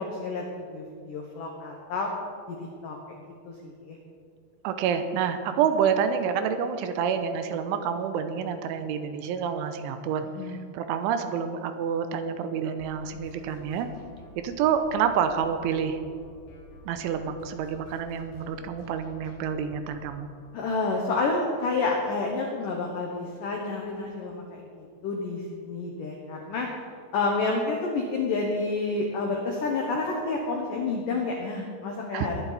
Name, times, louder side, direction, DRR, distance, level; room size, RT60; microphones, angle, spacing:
voice 1, 0.0-2.1 2.5-2.6 2.8-4.0 10.4-10.6 20.5-24.7 25.0-26.7 27.1-32.4, left 3 dB, 85° left, 1 dB, 1.8 m, -29 dB
voice 2, 4.6-13.9 14.4-16.0 16.9-20.3 32.1-32.3, right 7 dB, 80° right, 8 dB, 3.1 m, -28 dB
sound 1, 12.8-21.2, left 1 dB, 65° left, 4.2 m, -51 dB
20.5 x 10.5 x 4.1 m, 2.2 s
omnidirectional pair, 5.7 m